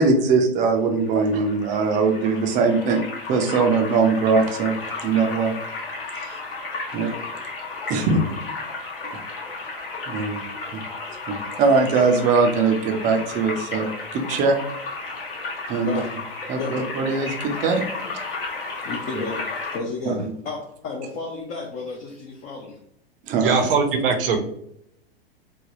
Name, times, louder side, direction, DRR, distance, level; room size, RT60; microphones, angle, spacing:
voice 1, 0.0-3.0 3.3-4.8 5.0-5.6 6.2-6.4 6.9-7.1 7.9-8.2 9.1-9.2 10.1-10.4 10.7-10.8 11.3-14.6 15.7-15.9 16.5-17.8 20.1-20.3 23.3-23.7, right 4 dB, 25° right, 4 dB, 0.5 m, -21 dB
sound 1, 0.9-19.8, left 3 dB, 65° left, 1.0 m, -33 dB
voice 2, 18.8-20.6 20.8-22.8, left 3 dB, 25° left, 0 dB, 0.4 m, -32 dB
voice 3, 23.4-24.4, right 5 dB, 60° right, 5 dB, 0.7 m, -20 dB
3.3 x 2.2 x 2.5 m, 0.72 s
figure-of-eight pair, 100°, 30 cm